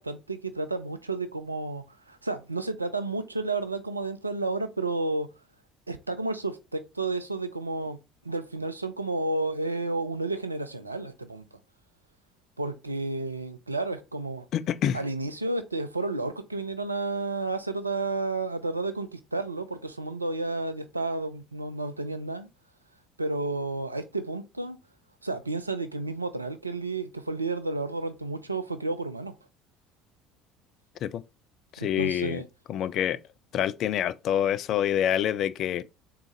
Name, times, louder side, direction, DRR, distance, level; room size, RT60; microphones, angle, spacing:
voice 1, 0.0-5.3 5.9-8.0 8.2-11.5 12.6-14.5 14.9-22.5 23.2-24.8 25.2-29.3 31.8-32.5, right 2 dB, 85° right, 0.4 m, -31 dB
voice 2, 14.5-15.0 31.0-31.2 31.7-32.4 32.7-33.2 33.5-35.8, left 10 dB, 50° left, 0.3 m, -26 dB
3.7 x 2.8 x 3.8 m
figure-of-eight pair, 60°, 0 cm